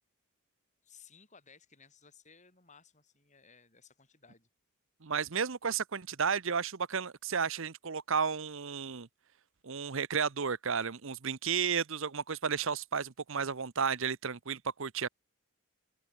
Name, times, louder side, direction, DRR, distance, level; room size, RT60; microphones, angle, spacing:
voice 1, 0.8-4.5, left 6 dB, 35° left, 5.9 m, -59 dB
voice 2, 5.0-9.1 9.6-15.1, right 6 dB, 60° right, 0.9 m, -33 dB
open air
head